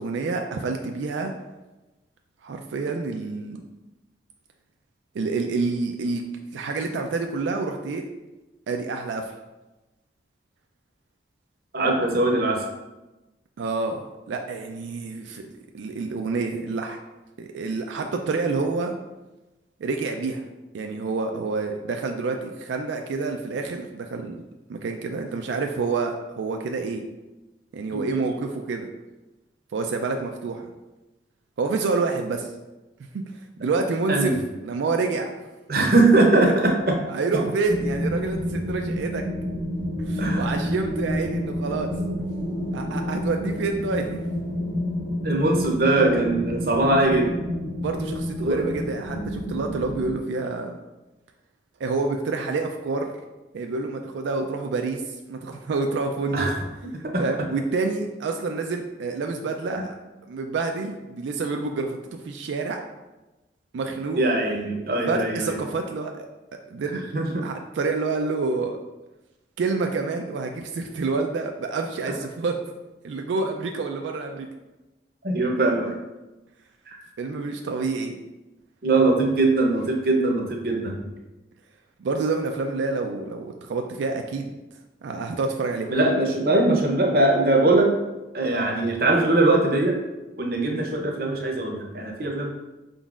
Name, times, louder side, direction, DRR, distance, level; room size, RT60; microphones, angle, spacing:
voice 1, 0.0-1.3 2.4-3.6 5.1-6.2 6.5-8.0 8.7-9.3 13.6-14.0 14.3-17.0 17.4-18.9 19.8-20.4 20.7-24.4 24.7-27.0 27.7-28.9 29.7-30.7 31.6-32.5 33.1-34.3 34.6-35.3 36.5-36.6 37.1-39.2 40.0-41.9 42.7-44.2 47.8-50.8 51.8-53.1 53.5-56.5 57.2-60.0 60.3-62.8 63.7-64.2 65.1-66.3 66.7-67.0 67.4-68.8 69.6-72.6 73.0-74.5 77.2-78.2 82.0-84.5 85.0-85.9, right 3 dB, 90° right, 4 dB, 0.4 m, -28 dB
voice 2, 11.7-12.6 34.1-34.4 35.7-37.0 40.2-40.5 45.2-47.3 48.4-48.7 56.3-56.5 57.1-57.2 59.8-59.9 64.2-65.6 67.1-67.5 75.2-76.0 76.9-77.0 78.8-81.0 85.9-88.0 88.3-90.0 90.4-92.5, right 2 dB, 55° right, 1 dB, 0.7 m, -21 dB
sound 1, 37.6-50.2, equal, 60° left, 0.9 m, -29 dB
5.1 x 3.8 x 2.4 m, 1.1 s
head